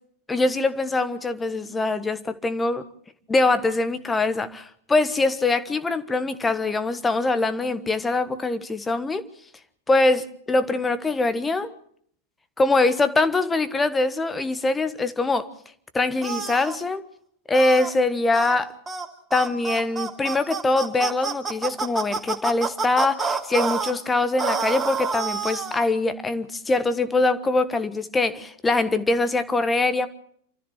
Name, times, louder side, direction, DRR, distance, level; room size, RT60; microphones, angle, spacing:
voice 1, 0.3-2.8 3.3-9.2 9.9-11.7 12.6-15.5 15.9-17.0 17.5-18.7 19.3-30.1, left 2 dB, 10° left, 12 dB, 1.4 m, -23 dB
sound 1, 16.2-16.8 17.5-17.9 18.3-18.6 18.9-19.1 19.3-23.9 24.4-25.9, right 5 dB, 15° right, 2.5 m, -28 dB
28.0 x 14.0 x 7.3 m, 0.64 s
figure-of-eight pair, 90°, 0 cm